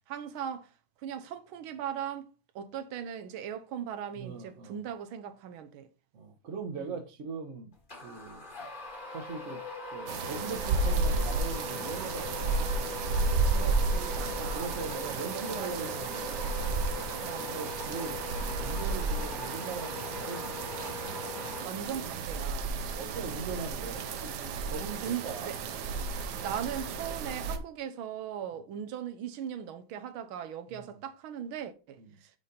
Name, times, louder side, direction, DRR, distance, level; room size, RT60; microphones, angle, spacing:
voice 1, 0.1-0.7 1.0-2.3 2.5-5.9 6.8-7.0 13.5-14.7 15.3-16.0 17.2-17.6 21.6-22.7 23.4-23.5 25.0-25.6 26.4-32.3, right 9 dB, 85° right, 1.5 m, -39 dB
voice 2, 4.1-4.8 6.1-7.7 8.0-8.4 9.1-9.6 9.9-12.8 14.2-16.6 17.4-18.2 18.6-20.6 22.9-25.5 30.7-30.9 32.0-32.2, right 5 dB, 50° right, 1.0 m, -40 dB
sound 1, 7.9-22.2, left 3 dB, 30° left, 1.4 m, -41 dB
sound 2, 10.1-27.6, right 4 dB, 65° right, 1.1 m, -32 dB
5.7 x 5.0 x 3.9 m
omnidirectional pair, 2.2 m